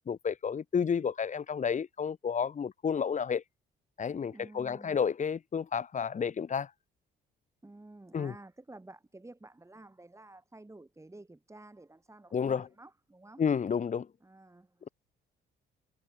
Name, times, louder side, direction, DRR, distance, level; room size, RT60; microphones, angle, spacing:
voice 1, 0.1-3.4 4.0-6.7 8.1-8.3 12.3-12.7 13.4-14.1, left 6 dB, 40° left, 1.1 m, -31 dB
voice 2, 4.3-5.0 7.6-13.4 14.2-14.9, right 2 dB, 15° right, 7.0 m, -52 dB
cardioid pair, 90°, 20 cm